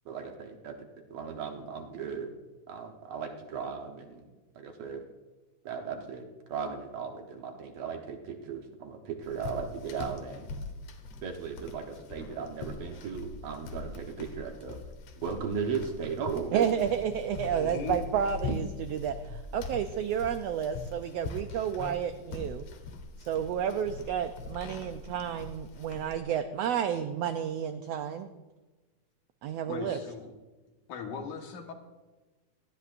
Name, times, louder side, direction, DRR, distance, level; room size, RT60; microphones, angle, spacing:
voice 1, 0.1-0.7 1.1-2.3 2.7-4.3 4.6-5.0 5.7-10.5 11.2-14.8 15.2-16.7, right 6 dB, 65° right, 3 dB, 2.1 m, -36 dB
sound 1, 9.2-26.2, left 3 dB, 65° left, 2.0 m, -42 dB
voice 2, 16.5-22.6 23.2-28.3 29.4-30.0, right 8 dB, 85° right, 8 dB, 1.4 m, -31 dB
voice 3, 17.5-18.0 29.7-30.3 30.9-31.7, left 6 dB, 85° left, 3 dB, 2.9 m, -38 dB
18.5 x 13.0 x 2.5 m, 1.2 s
omnidirectional pair, 3.5 m